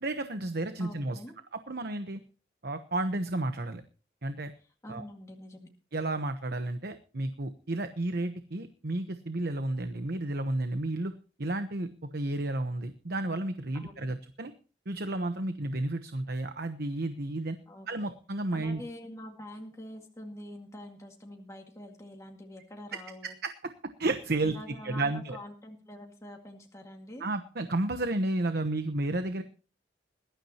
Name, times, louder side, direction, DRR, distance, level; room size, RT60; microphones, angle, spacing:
voice 1, 0.0-1.2 1.5-2.2 2.6-3.8 4.2-4.5 4.9-5.0 5.9-11.1 11.4-14.5 14.9-17.6 17.9-18.8 23.4-23.5 24.0-24.6 24.8-25.4 27.2-29.4, right 2 dB, 60° right, 9 dB, 1.0 m, -32 dB
voice 2, 0.8-1.3 4.8-5.7 13.7-14.1 17.7-18.1 18.5-23.3 24.4-27.3, left 1 dB, 20° left, 1 dB, 2.1 m, -45 dB
21.0 x 12.5 x 3.0 m, 0.36 s
head